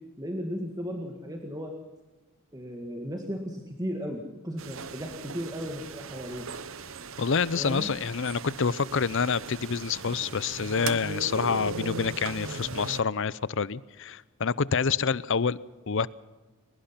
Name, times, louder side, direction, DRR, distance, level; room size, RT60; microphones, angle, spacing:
voice 1, 0.2-1.7 2.5-6.5 7.5-7.9, equal, 15° right, 2 dB, 1.8 m, -35 dB
sound 1, 4.6-13.0, right 4 dB, 65° right, 1.0 m, -38 dB
voice 2, 7.2-15.6 15.9-16.1, left 5 dB, 60° left, 20 dB, 0.6 m, -27 dB
22.0 x 21.0 x 5.8 m, 1.2 s
head